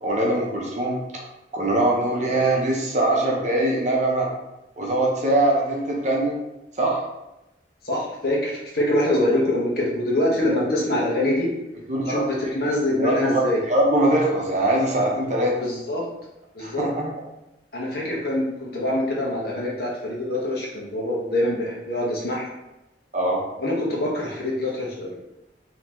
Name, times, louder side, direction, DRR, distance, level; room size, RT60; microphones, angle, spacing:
voice 1, 0.0-1.0 1.5-4.3 4.8-6.4 6.8-7.0 11.9-12.2 13.0-15.5 16.6-17.1 23.1-23.4, right 1 dB, 40° right, -2 dB, 0.8 m, -22 dB
voice 2, 7.8-11.5 12.1-13.6 15.6-16.0 16.5-16.8 17.7-22.5 23.6-25.2, left 1 dB, 55° left, -4 dB, 1.0 m, -24 dB
3.8 x 2.9 x 3.0 m, 0.94 s
head